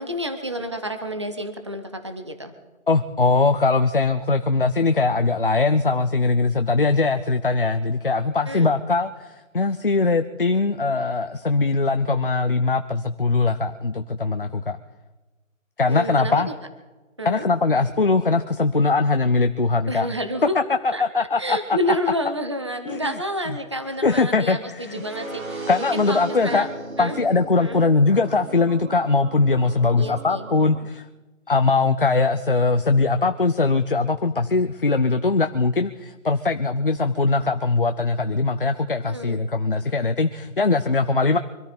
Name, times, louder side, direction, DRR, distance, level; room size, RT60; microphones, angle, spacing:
voice 1, 0.0-2.5 8.5-8.7 15.9-16.5 17.2-17.5 19.9-20.6 20.9-26.7 27.0-27.2 27.6-27.8 30.0-30.4 39.0-39.4, equal, 20° right, 8 dB, 0.8 m, -29 dB
voice 2, 2.9-9.3 9.5-14.8 15.8-16.5 17.2-20.1 20.5-21.8 22.9-23.1 24.0-25.0 25.7-26.7 27.0-31.0 31.5-41.4, left 3 dB, 40° left, 9 dB, 0.6 m, -21 dB
sound 1, 24.8-30.8, right 2 dB, 85° right, 3.8 m, -36 dB
24.5 x 13.5 x 4.3 m, 1.2 s
figure-of-eight pair, 170°, 41 cm